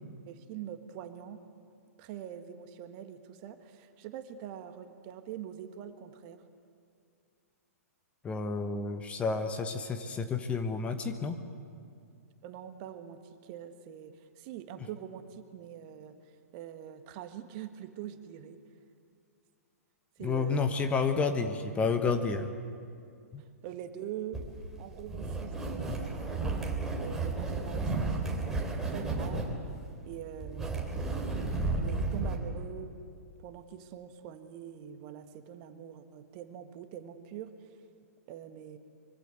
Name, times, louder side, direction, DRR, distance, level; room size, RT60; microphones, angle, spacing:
voice 1, 0.3-1.4 2.0-6.4 12.4-16.2 16.5-18.6 20.2-20.7 23.6-24.4 24.8-26.4 27.0-28.4 28.8-29.5 30.1-30.8 31.8-32.9 33.4-37.7 38.3-38.8, right 10 dB, 35° right, 8 dB, 1.6 m, -44 dB
voice 2, 8.2-11.4 20.2-22.5 23.3-23.4 25.9-26.0, left 4 dB, 15° left, 7 dB, 1.3 m, -30 dB
sound 1, 24.3-32.4, right 3 dB, 5° right, 3.6 m, -33 dB
25.0 x 23.5 x 8.2 m, 2.4 s
figure-of-eight pair, 110°, 8 cm